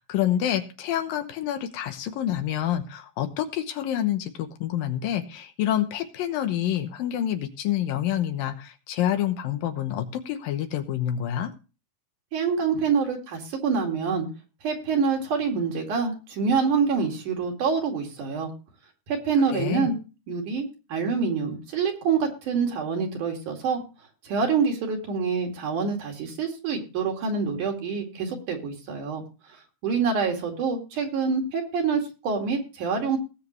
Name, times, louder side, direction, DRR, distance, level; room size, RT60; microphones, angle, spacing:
voice 1, 0.0-11.5 19.5-19.9, left 11 dB, 75° left, 8 dB, 2.7 m, -27 dB
voice 2, 12.3-14.3 14.6-18.5 19.1-20.0 20.3-23.8 24.2-29.2 29.8-33.2, right 5 dB, 60° right, 2 dB, 3.6 m, -26 dB
19.0 x 7.5 x 3.1 m, 0.32 s
omnidirectional pair, 4.3 m